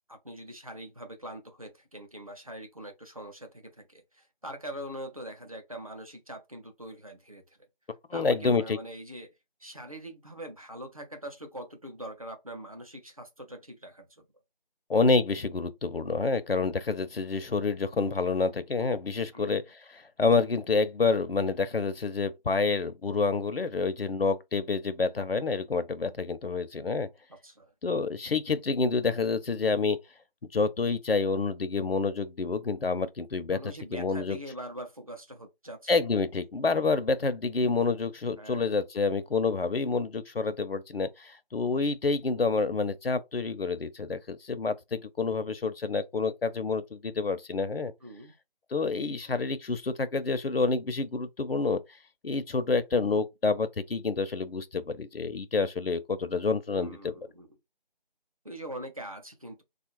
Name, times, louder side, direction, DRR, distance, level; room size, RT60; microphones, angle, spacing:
voice 1, 0.1-7.6 8.1-9.3 9.6-14.2 19.3-19.6 27.3-27.7 33.5-36.2 37.0-37.1 38.4-38.7 48.0-48.3 56.7-57.5 58.4-59.6, right 1 dB, 40° right, 0.6 m, -43 dB
voice 2, 8.1-8.8 14.9-27.1 27.8-30.0 30.5-33.6 33.9-34.4 35.9-47.9 48.7-51.8 52.2-57.1, left 4 dB, 80° left, 0.7 m, -28 dB
3.3 x 2.4 x 2.9 m
figure-of-eight pair, 170°, 29 cm